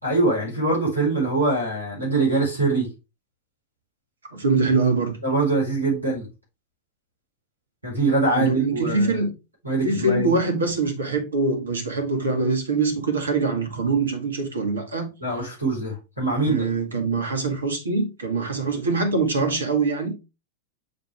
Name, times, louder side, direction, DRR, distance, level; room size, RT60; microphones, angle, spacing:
voice 1, 0.0-2.9 5.2-6.3 7.8-9.2 9.6-10.3 15.2-16.7, right 3 dB, 85° right, 4.6 m, -23 dB
voice 2, 4.3-5.2 8.3-9.3 9.8-15.1 16.3-20.1, right 3 dB, 70° right, 2.0 m, -23 dB
6.9 x 5.0 x 3.4 m
figure-of-eight pair, 90°, 0 cm